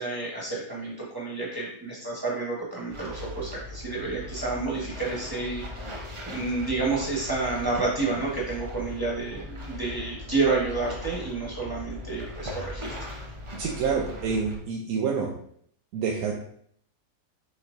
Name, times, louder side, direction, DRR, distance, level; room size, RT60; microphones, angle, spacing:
voice 1, 0.0-12.9, right 3 dB, 15° right, -5 dB, 1.2 m, -30 dB
sound 1, 2.9-14.6, left 1 dB, 35° right, 0.5 m, -39 dB
voice 2, 13.6-15.4 15.9-16.3, right 5 dB, 75° right, -1 dB, 1.0 m, -27 dB
6.4 x 3.0 x 2.6 m, 0.66 s
omnidirectional pair, 1.6 m